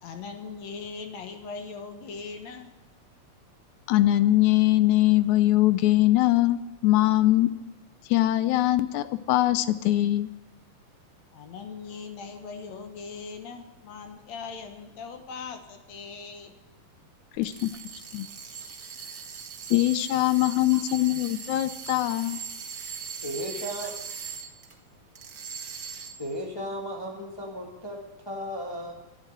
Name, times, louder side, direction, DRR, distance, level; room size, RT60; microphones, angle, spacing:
voice 1, 0.0-2.7 11.3-16.5 17.5-17.8, left 5 dB, 60° left, 6 dB, 2.4 m, -40 dB
voice 2, 3.9-7.5 8.1-10.3 17.4-17.7 18.1-18.3 19.7-22.4, left 15 dB, 80° left, 14 dB, 1.8 m, -22 dB
sound 1, 17.3-24.7 25.1-26.3, right 6 dB, 50° right, 1.1 m, -40 dB
voice 3, 20.4-20.8 23.2-23.9 26.2-28.9, equal, 25° left, -1 dB, 0.5 m, -35 dB
12.0 x 9.7 x 8.8 m, 1.1 s
omnidirectional pair, 3.8 m